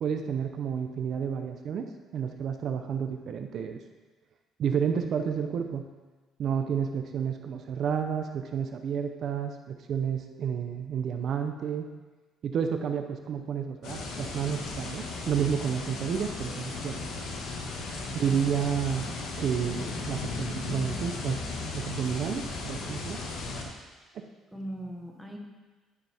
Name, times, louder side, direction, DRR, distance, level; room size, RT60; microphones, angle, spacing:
voice 1, 0.0-3.8 4.6-5.9 6.4-11.9 12.4-17.1 18.1-19.1 19.4-21.4 21.7-23.2 23.5-23.7 24.1-24.3, right 7 dB, 45° right, 6 dB, 0.7 m, -30 dB
sound 1, 13.8-23.6, left 3 dB, 85° left, 1.7 m, -36 dB
voice 2, 18.0-18.7 19.0-19.2 24.5-25.4, right 1 dB, ahead, -1 dB, 1.2 m, -41 dB
11.0 x 9.6 x 3.5 m, 1.3 s
cardioid pair, 165°, 0 cm